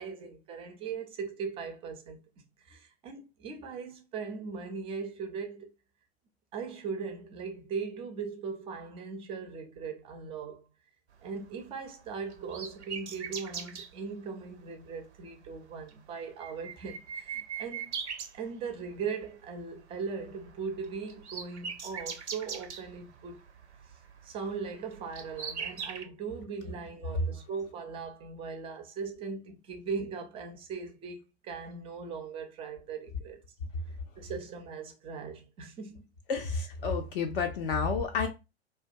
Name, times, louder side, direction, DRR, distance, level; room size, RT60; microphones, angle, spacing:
voice 1, 0.0-2.2 2.7-5.7 6.5-10.7 11.2-17.9 18.3-23.4 24.2-33.4 34.2-36.0, right 5 dB, 15° right, 0.4 m, -39 dB
sound 1, 11.3-13.9 14.8-15.1 15.4-15.5 15.8-19.0 19.3-19.7 19.9-26.0, right 6 dB, 85° right, 0.5 m, -41 dB
voice 2, 36.3-38.3, left 5 dB, 55° left, 0.4 m, -30 dB
2.2 x 2.1 x 2.6 m
figure-of-eight pair, 90°, 33 cm